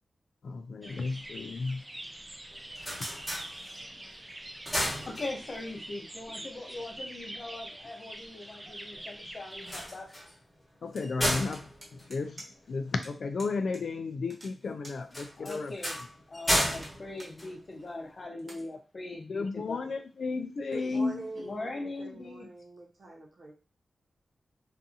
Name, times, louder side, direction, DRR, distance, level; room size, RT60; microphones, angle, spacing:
voice 1, 0.4-1.8 10.8-11.6 11.9-15.7 19.3-21.3, left 4 dB, 75° left, 8 dB, 0.3 m, -33 dB
sound 1, 0.8-9.9, right 1 dB, 20° right, 0.4 m, -45 dB
sound 2, 2.5-4.0 4.4-5.7 9.5-13.0 15.1-18.1, equal, 10° left, 1.1 m, -34 dB
voice 2, 5.1-10.1 11.2-11.4 15.4-16.0 16.3-19.8 21.4-22.5, left 2 dB, 50° left, 1 dB, 0.7 m, -40 dB
sound 3, 11.0-12.7 13.0-13.1 13.4-13.8 14.1-16.0 16.4-17.3 17.8-17.9 18.4-18.6, right 1 dB, 35° right, 0.9 m, -49 dB
voice 3, 20.7-23.6, right 2 dB, 70° right, -2 dB, 0.9 m, -44 dB
2.6 x 2.4 x 2.6 m, 0.34 s
wide cardioid pair, 110°, 0 cm